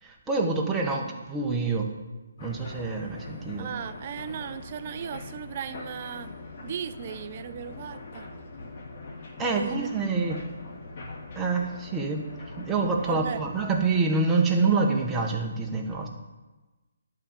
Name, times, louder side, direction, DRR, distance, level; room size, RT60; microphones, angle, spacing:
voice 1, 0.0-1.9 2.4-3.7 9.4-10.4 11.3-12.3 12.6-16.1, right 4 dB, 10° right, 0 dB, 1.4 m, -26 dB
sound 1, 2.4-14.0, left 2 dB, 45° left, 2.0 m, -42 dB
voice 2, 3.6-6.3 6.6-8.3 9.4-9.9 13.1-13.4, right 8 dB, 40° right, 11 dB, 0.7 m, -36 dB
11.5 x 5.2 x 7.3 m, 1.2 s
figure-of-eight pair, 145°, 0 cm